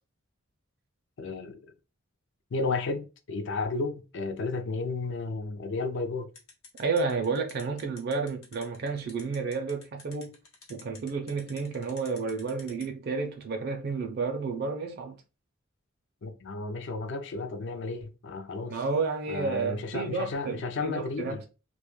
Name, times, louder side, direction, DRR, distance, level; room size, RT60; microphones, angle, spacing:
voice 1, 1.2-1.6 2.5-6.3 16.2-18.8 19.3-21.4, left 3 dB, 60° left, 0.4 m, -33 dB
sound 1, 6.3-12.8, left 5 dB, 90° left, 0.8 m, -49 dB
voice 2, 6.8-10.4 10.7-15.2 18.7-21.4, right 4 dB, 50° right, 0.4 m, -31 dB
2.2 x 2.0 x 3.0 m
head